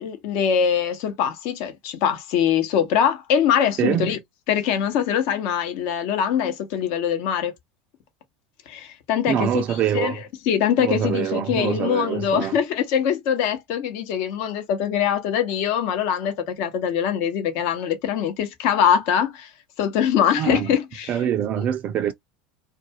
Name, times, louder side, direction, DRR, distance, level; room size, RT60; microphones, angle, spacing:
voice 1, 0.0-4.2 4.5-7.5 8.7-9.6 9.9-10.2 10.5-19.5 19.8-21.2, left 8 dB, 60° left, 0.9 m, -23 dB
voice 2, 3.8-4.2 9.3-10.2 10.8-12.6 20.4-20.8 21.1-22.1, right 9 dB, 45° right, 0.4 m, -24 dB
2.4 x 2.3 x 2.8 m
hypercardioid pair, 85°, 4 cm